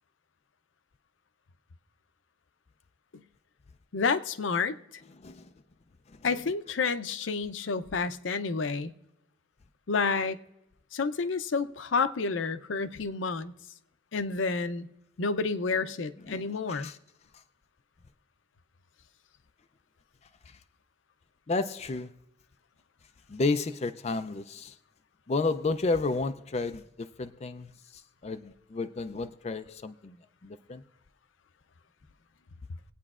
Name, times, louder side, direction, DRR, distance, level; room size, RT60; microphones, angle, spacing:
voice 1, 3.9-4.8 6.2-8.9 9.9-10.4 10.9-13.5 14.1-14.9 15.2-16.9, left 4 dB, 85° left, 0.6 m, -29 dB
voice 2, 5.2-5.5 16.2-17.0 21.5-22.1 23.3-24.7 25.3-30.2 30.4-30.8, left 3 dB, 35° left, 0.4 m, -32 dB
23.5 x 8.8 x 2.4 m
head